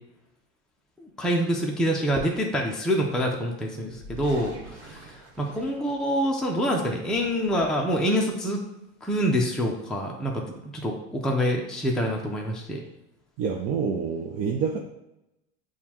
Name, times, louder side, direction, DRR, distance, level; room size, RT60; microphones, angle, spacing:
voice 1, 1.0-8.6 9.0-10.4 10.7-12.8, equal, ahead, -1 dB, 0.6 m, -26 dB
sound 1, 3.9-6.4 6.9-8.0, right 1 dB, 70° right, 1.2 m, -46 dB
voice 2, 13.4-14.8, right 6 dB, 40° right, 0 dB, 0.6 m, -27 dB
6.7 x 2.4 x 2.9 m, 0.90 s
hypercardioid pair, 100°, 33 cm